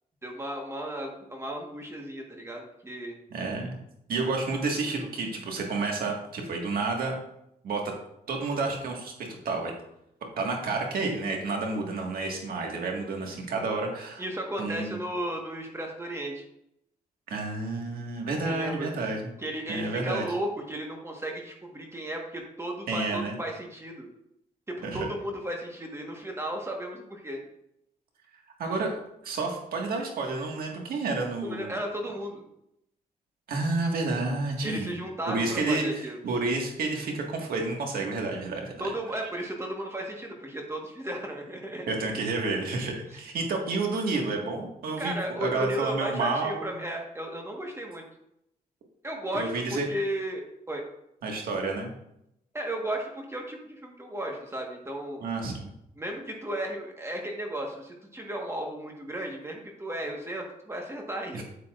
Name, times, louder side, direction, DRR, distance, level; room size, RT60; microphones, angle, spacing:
voice 1, 0.2-3.2 14.2-16.4 18.4-18.9 19.4-24.1 24.7-27.4 31.4-32.5 34.6-36.2 38.8-42.0 45.0-48.0 49.0-50.8 52.5-55.2 56.0-61.4, right 1 dB, 15° right, 1 dB, 1.4 m, -34 dB
voice 2, 3.3-3.7 4.1-7.2 7.6-7.8 8.3-9.7 10.4-14.2 14.6-15.0 17.3-19.3 19.7-20.2 22.9-23.3 24.9-25.1 28.6-31.8 33.5-35.0 35.3-38.9 41.9-46.7 49.3-49.8 51.2-51.9 55.2-55.7 61.3-61.4, right 3 dB, 85° right, 1 dB, 1.7 m, -30 dB
8.6 x 8.4 x 2.5 m, 0.79 s
cardioid pair, 95°, 15 cm